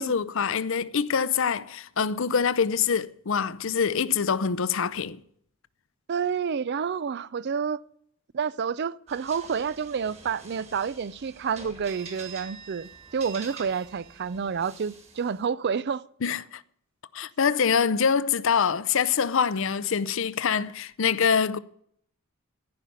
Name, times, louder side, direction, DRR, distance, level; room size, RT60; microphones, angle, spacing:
voice 1, 0.0-5.2 16.2-16.6 17.1-21.6, left 6 dB, 65° left, 0.6 m, -25 dB
voice 2, 6.1-7.8 8.3-16.0, right 6 dB, 50° right, 0.4 m, -29 dB
sound 1, 9.1-15.4, right 5 dB, 30° right, 2.1 m, -46 dB
14.5 x 5.7 x 9.2 m
head